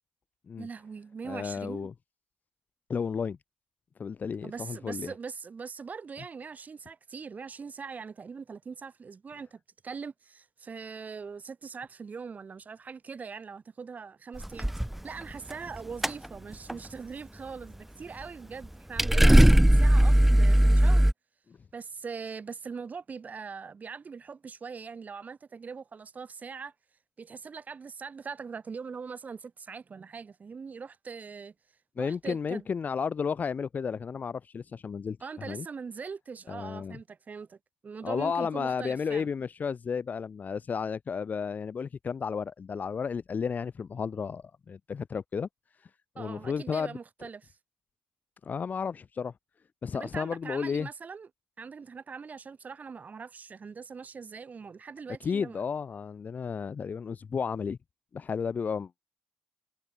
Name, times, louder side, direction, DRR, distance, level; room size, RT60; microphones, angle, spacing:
voice 1, 0.6-1.9 4.4-14.7 15.0-21.1 21.7-26.7 27.2-31.5 32.0-32.6 35.2-37.6 37.8-39.3 46.2-47.5 49.9-51.3 51.6-55.6, right 5 dB, 40° right, 4.6 m, -41 dB
voice 2, 1.2-1.9 2.9-3.4 4.0-5.1 32.0-35.7 36.5-37.0 38.0-45.5 46.1-47.0 48.4-49.3 49.8-50.9 55.2-57.8 58.1-58.9, left 6 dB, 40° left, 1.8 m, -33 dB
sound 1, 14.4-15.0 15.3-15.8 16.0-16.3 16.5-16.7 18.6-18.7 19.0-21.1, right 1 dB, 5° right, 0.4 m, -19 dB
hypercardioid pair, 50°, 4 cm